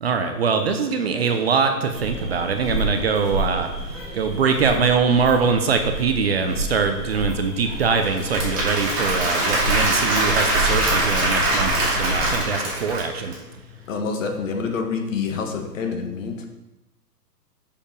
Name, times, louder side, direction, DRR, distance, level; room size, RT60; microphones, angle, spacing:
voice 1, 0.0-3.7 4.1-13.3, right 5 dB, 40° right, 6 dB, 0.6 m, -22 dB
sound 1, 1.9-12.4, right 1 dB, ahead, 2.0 m, -30 dB
Applause / Crowd, 8.0-13.3, right 1 dB, 15° right, 2.2 m, -23 dB
voice 2, 13.9-16.5, left 5 dB, 50° left, 5 dB, 1.4 m, -27 dB
6.7 x 5.2 x 5.1 m, 1.0 s
hypercardioid pair, 150°, 49 cm